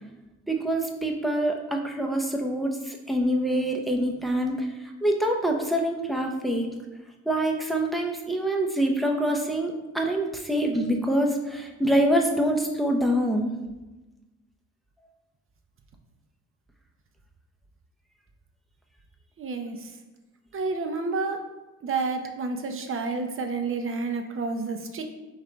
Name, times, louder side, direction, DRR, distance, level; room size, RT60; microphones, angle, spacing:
voice 1, 0.5-4.7 5.0-6.7 7.3-13.5, right 1 dB, ahead, 1 dB, 0.7 m, -25 dB
voice 2, 19.4-19.9 20.5-21.4 21.8-25.0, right 4 dB, 45° right, 5 dB, 0.7 m, -30 dB
3.7 x 3.2 x 4.4 m, 1.1 s
cardioid pair, 90°, 30 cm